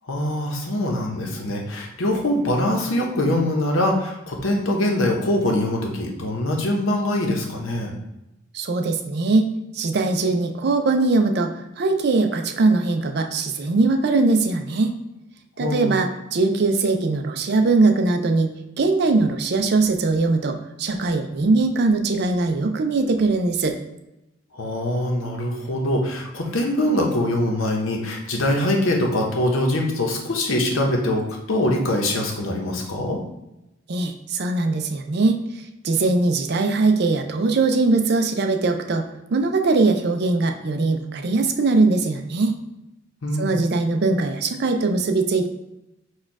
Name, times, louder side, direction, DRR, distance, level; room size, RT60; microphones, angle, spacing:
voice 1, 0.1-7.9 15.6-16.0 24.5-33.2 43.2-43.6, left 1 dB, 90° left, 1 dB, 0.9 m, -23 dB
voice 2, 8.5-14.9 15.6-23.8 33.9-35.4 35.8-39.1 39.3-42.5 43.4-45.5, right 3 dB, 55° right, 5 dB, 0.4 m, -21 dB
4.3 x 2.3 x 4.6 m, 0.92 s
head